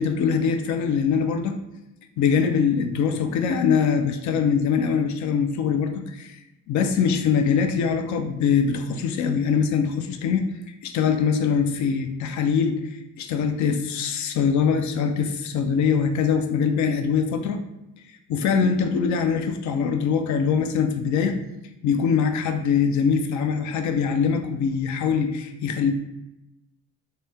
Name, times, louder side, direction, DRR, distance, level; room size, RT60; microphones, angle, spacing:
voice 1, 0.0-1.6 2.2-6.4 6.7-10.5 10.8-12.8 13.2-17.6 18.3-21.4 21.8-25.9, left 6 dB, 70° left, 6 dB, 0.5 m, -23 dB
3.0 x 2.1 x 3.4 m, 0.92 s
cardioid pair, 90°, 30 cm